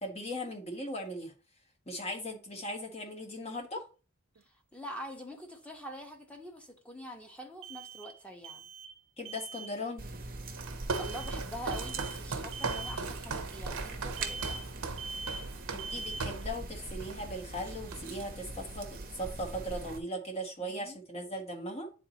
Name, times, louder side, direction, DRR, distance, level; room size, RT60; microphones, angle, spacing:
voice 1, 0.0-1.3 1.9-3.8 9.2-10.1 15.7-21.9, equal, 30° left, 1.3 m, -38 dB
sound 1, 4.4-4.5 7.6-8.2 8.4-9.0 9.3-9.8 10.9-11.4 11.7-12.2 12.5-13.0 14.2-14.7 15.0-15.5 15.8-16.4, right 4 dB, 60° right, 0.5 m, -42 dB
voice 2, 4.7-8.7 11.0-14.6 20.6-21.0, equal, 5° left, 1.2 m, -45 dB
sound 2, 10.0-20.0, right 2 dB, 40° right, 0.9 m, -42 dB
Walk footsteps, 10.5-16.5 17.0-17.3 17.5-18.3, right 4 dB, 85° right, 1.0 m, -38 dB
9.8 x 4.1 x 2.9 m
head